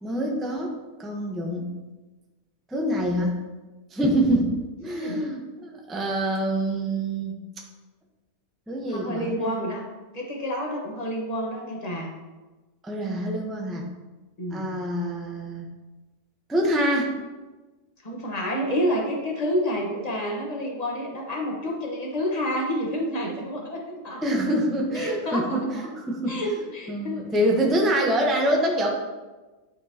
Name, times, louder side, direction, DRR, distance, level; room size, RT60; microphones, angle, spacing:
voice 1, 0.0-1.7 2.7-3.3 3.9-4.5 4.8-7.4 8.7-9.6 12.8-13.9 14.5-15.7 16.5-17.1 24.2-28.9, right 1 dB, ahead, 0 dB, 0.5 m, -26 dB
voice 2, 4.9-5.2 8.9-9.8 10.1-12.1 14.4-14.7 18.0-24.2 25.0-25.9 26.3-27.3, equal, 25° left, -1 dB, 1.2 m, -29 dB
11.5 x 4.6 x 2.8 m, 1.2 s
omnidirectional pair, 1.7 m